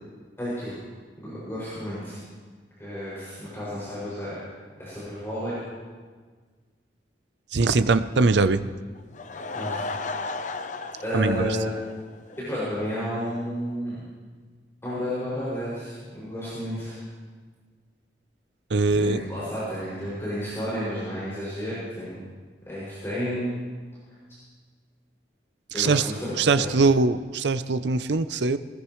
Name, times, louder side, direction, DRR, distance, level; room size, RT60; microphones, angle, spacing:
voice 1, 0.4-0.8 1.2-2.2 2.8-4.4 4.8-5.5 9.5-10.2 11.0-11.7 12.4-14.0 14.8-17.0 18.9-22.2 22.7-23.5 25.7-26.7, equal, 15° left, -10 dB, 6.3 m, -31 dB
voice 2, 7.5-8.6 11.1-11.6 18.7-19.2 25.7-28.6, right 3 dB, 80° right, 12 dB, 0.6 m, -22 dB
Laughter / Crowd, 9.0-12.4 12.7-12.8 13.4-13.5 13.7-13.8, left 3 dB, 45° left, 0.7 m, -34 dB
20.5 x 20.5 x 3.2 m, 1.5 s
head